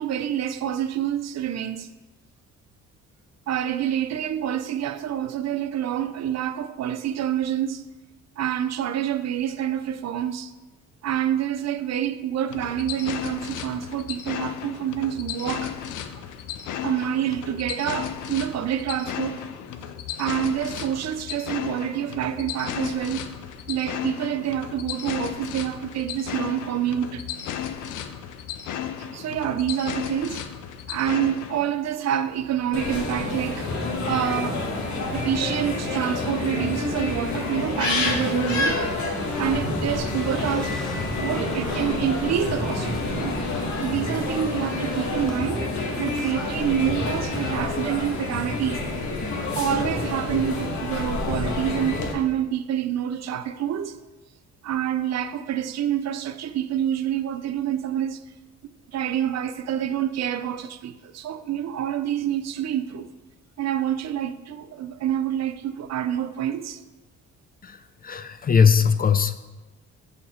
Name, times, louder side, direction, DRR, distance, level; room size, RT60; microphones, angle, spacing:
voice 1, 0.0-1.9 3.5-7.8 8.4-10.5 11.0-15.7 16.8-19.4 20.2-23.3 23.7-27.2 29.1-30.5 30.9-34.6 35.1-38.9 39.3-40.8 41.2-43.3 43.8-48.8 49.6-54.0 54.6-58.3 58.9-63.1 63.6-66.8, right 10 dB, 60° right, 0.5 m, -27 dB
sound 1, 12.5-31.7, left 9 dB, 85° left, 0.6 m, -34 dB
sound 2, 32.7-52.1, left 2 dB, 70° left, 1.4 m, -28 dB
Car, 39.0-47.2, equal, ahead, 0.9 m, -41 dB
voice 2, 68.0-69.3, left 6 dB, 30° left, 0.4 m, -19 dB
6.7 x 6.5 x 4.2 m
cardioid pair, 90°, 30 cm